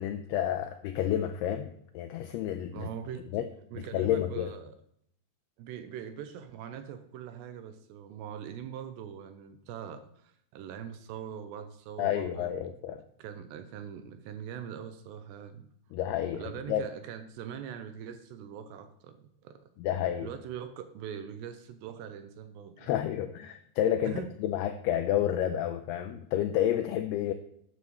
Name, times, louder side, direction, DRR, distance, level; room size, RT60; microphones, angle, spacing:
voice 1, 0.0-2.9 3.3-3.5 3.9-4.5 12.0-13.0 15.9-16.4 16.7-16.8 19.8-20.3 22.8-27.3, left 11 dB, 90° left, 6 dB, 2.3 m, -30 dB
voice 2, 2.7-3.3 3.7-4.7 5.6-12.7 13.2-15.7 16.3-19.7 20.2-22.9 24.0-24.3, right 8 dB, 80° right, 9 dB, 2.7 m, -42 dB
13.0 x 9.7 x 3.1 m, 0.71 s
omnidirectional pair, 5.2 m